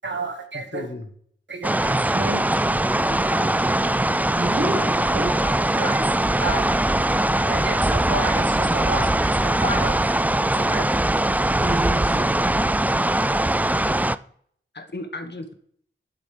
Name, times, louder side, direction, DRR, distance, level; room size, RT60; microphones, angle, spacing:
voice 1, 0.0-0.9 1.5-2.1 3.0-3.1 5.4-6.9 7.5-10.2 10.5-10.8, right 3 dB, 65° right, 5 dB, 1.8 m, -32 dB
voice 2, 0.5-1.1 3.1-3.8 4.7-4.9 14.7-15.5, left 2 dB, 55° left, 6 dB, 1.6 m, -36 dB
sound 1, 1.6-14.2, right 1 dB, 10° right, 0.3 m, -21 dB
voice 3, 2.1-2.5 4.4-5.3 11.6-12.4, right 1 dB, 45° right, 0 dB, 1.6 m, -29 dB
11.5 x 8.5 x 3.4 m, 0.62 s
wide cardioid pair, 85°, 21 cm